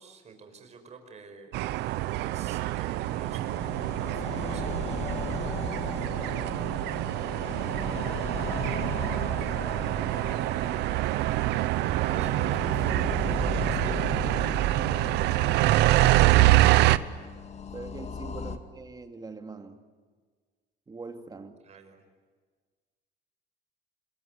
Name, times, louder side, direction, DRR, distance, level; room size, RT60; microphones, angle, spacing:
voice 1, 0.0-1.6 2.1-4.8 11.9-14.1 21.6-22.0, right 4 dB, 40° right, 6 dB, 5.2 m, -47 dB
sound 1, 1.5-17.0, right 16 dB, 90° right, 0.9 m, -26 dB
sound 2, 3.0-18.6, left 5 dB, 40° left, 2.1 m, -38 dB
voice 2, 5.9-6.8 15.3-15.7 17.7-19.8 20.9-21.6, right 3 dB, 25° right, 6 dB, 2.6 m, -44 dB
27.0 x 23.0 x 9.5 m, 1.5 s
cardioid pair, 110°, 17 cm